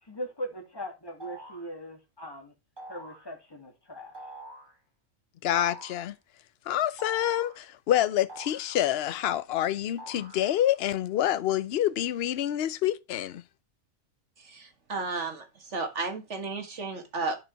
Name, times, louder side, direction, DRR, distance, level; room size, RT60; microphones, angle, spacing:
voice 1, 0.0-2.5 2.9-4.2, equal, 20° left, 2.1 m, -40 dB
sound 1, 1.2-1.7 2.8-3.3 4.1-4.8 5.5-6.1 7.0-7.7 8.3-9.2 10.0-10.8, right 1 dB, 20° right, 2.2 m, -46 dB
voice 2, 5.4-6.2 6.7-13.4, left 12 dB, 60° left, 0.8 m, -27 dB
voice 3, 14.5-15.4 15.7-17.4, right 3 dB, 60° right, 2.1 m, -33 dB
11.0 x 5.0 x 4.6 m
omnidirectional pair, 1.4 m